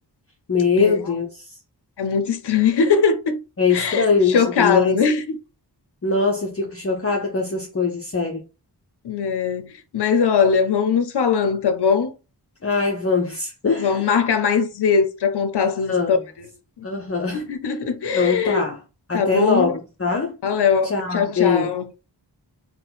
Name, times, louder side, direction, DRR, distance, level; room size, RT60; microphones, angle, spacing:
voice 1, 0.5-1.4 3.6-5.0 6.0-8.4 12.6-14.1 15.9-16.2 16.8-17.5 18.1-18.8 19.1-20.4 20.8-21.7, left 4 dB, 35° left, 0.7 m, -22 dB
voice 2, 2.0-3.4 3.7-5.4 9.0-12.1 13.8-16.2 16.8-16.9 17.3-18.6 19.1-19.8 20.4-21.9, left 6 dB, 65° left, 0.7 m, -21 dB
3.8 x 2.2 x 4.0 m
wide cardioid pair, 55°, 42 cm